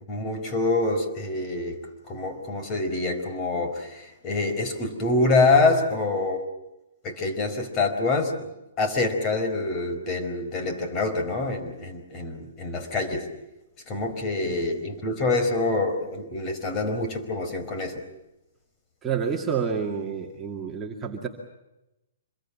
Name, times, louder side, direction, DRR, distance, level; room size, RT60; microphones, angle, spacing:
voice 1, 0.1-1.8 2.1-6.4 7.0-8.3 8.8-13.3 13.9-18.0, left 3 dB, 25° left, 6 dB, 4.5 m, -26 dB
voice 2, 19.0-21.3, right 6 dB, 10° right, -1 dB, 2.4 m, -29 dB
27.0 x 22.5 x 7.4 m, 0.95 s
hypercardioid pair, 155°, 0 cm